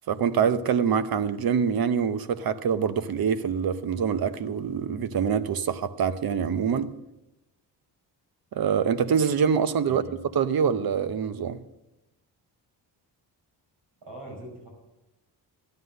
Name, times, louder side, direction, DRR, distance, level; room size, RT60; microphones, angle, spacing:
voice 1, 0.1-6.9 8.5-10.0 10.3-11.6, right 7 dB, 60° right, 0.9 m, -25 dB
voice 2, 9.9-10.2 14.0-14.7, right 1 dB, 80° right, 5.7 m, -41 dB
13.0 x 9.7 x 6.5 m
cardioid pair, 95°, 42 cm